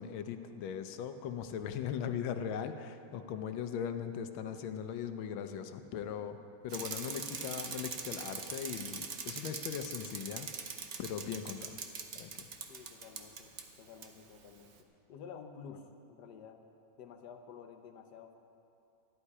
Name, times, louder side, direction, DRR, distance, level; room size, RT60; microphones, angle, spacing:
voice 1, 0.0-6.4 6.6-10.5 11.0-11.8 12.1-12.5, left 8 dB, 90° left, 9 dB, 1.5 m, -39 dB
Bicycle, 6.7-13.6 14.0-14.1, right 5 dB, 55° right, 0.8 m, -42 dB
voice 2, 12.7-13.5 13.8-14.8 15.1-15.8 16.1-16.6 17.0-18.3, left 7 dB, 65° left, 6 dB, 1.3 m, -50 dB
13.5 x 11.0 x 4.8 m, 2.7 s
omnidirectional pair, 2.1 m